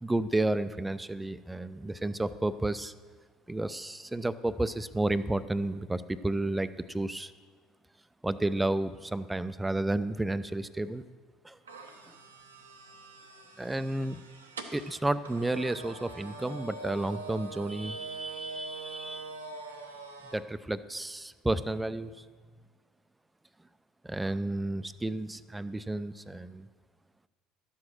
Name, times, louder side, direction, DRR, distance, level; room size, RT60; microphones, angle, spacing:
voice 1, 0.0-2.9 3.5-7.3 8.2-11.0 11.4-11.6 12.1-12.2 13.6-14.2 14.7-19.3 20.3-22.2 24.0-26.7, right 2 dB, 10° right, 13 dB, 0.5 m, -31 dB
sound 1, 11.7-20.4, right 4 dB, 85° right, 0.8 m, -44 dB
12.0 x 7.8 x 6.0 m, 1.5 s
hypercardioid pair, 65°, 0 cm